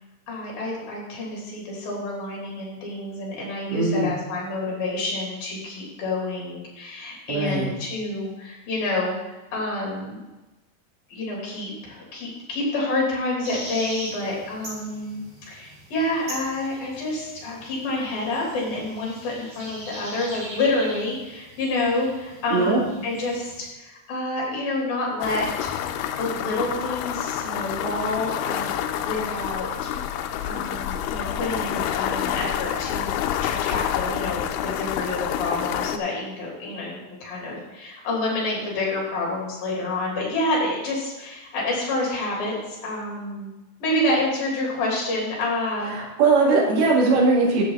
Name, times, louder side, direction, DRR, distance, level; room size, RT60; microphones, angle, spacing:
voice 1, 0.3-10.2 11.1-15.2 15.5-25.7 26.2-29.9 30.4-43.5 43.8-46.0, left 2 dB, 65° left, -3 dB, 5.0 m, -28 dB
voice 2, 3.7-4.1 7.3-7.7 22.5-22.8 45.9-47.6, right 3 dB, 80° right, -2 dB, 4.2 m, -20 dB
sound 1, 13.4-23.7, equal, 40° right, 4.5 m, -41 dB
sound 2, 25.2-36.0, left 10 dB, 80° left, 2.5 m, -28 dB
12.5 x 7.2 x 4.0 m, 1.1 s
omnidirectional pair, 4.5 m